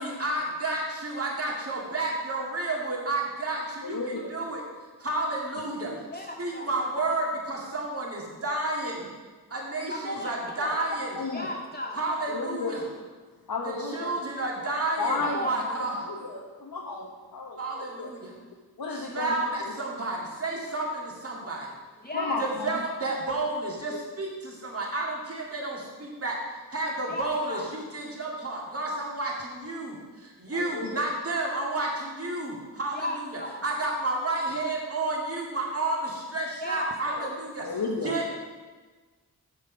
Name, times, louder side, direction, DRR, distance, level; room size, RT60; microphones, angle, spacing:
voice 1, 0.0-4.6 5.0-5.9 6.4-9.1 9.5-11.2 12.0-12.8 13.6-16.1 17.6-18.3 18.9-21.7 22.4-26.4 26.7-33.1 33.6-37.6 38.0-38.4, right 2 dB, 40° right, -3 dB, 2.1 m, -31 dB
voice 2, 3.8-4.3 11.1-11.5 12.3-12.9 13.5-14.2 15.0-15.7 16.0-18.1 18.8-19.3 19.6-19.7 22.1-22.8 30.5-31.0 37.6-38.2, left 3 dB, 70° left, -2 dB, 1.1 m, -33 dB
voice 3, 6.1-6.7 9.9-10.8 11.3-12.0 15.2-15.7 22.0-22.5 27.1-27.7 32.9-33.6 36.6-37.3, left 1 dB, 25° left, -1 dB, 1.8 m, -35 dB
7.4 x 7.2 x 5.1 m, 1.4 s
wide cardioid pair, 70°, 37 cm